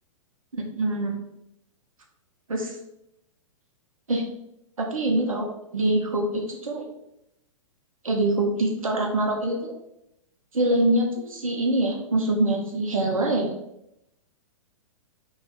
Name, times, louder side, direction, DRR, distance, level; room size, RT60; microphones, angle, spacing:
voice 1, 0.5-1.2 2.5-2.8 4.1-4.2 4.8-6.8 8.0-9.7 10.5-13.5, right 1 dB, 85° right, 0 dB, 0.6 m, -24 dB
2.4 x 2.2 x 3.4 m, 0.82 s
figure-of-eight pair, 110°, 17 cm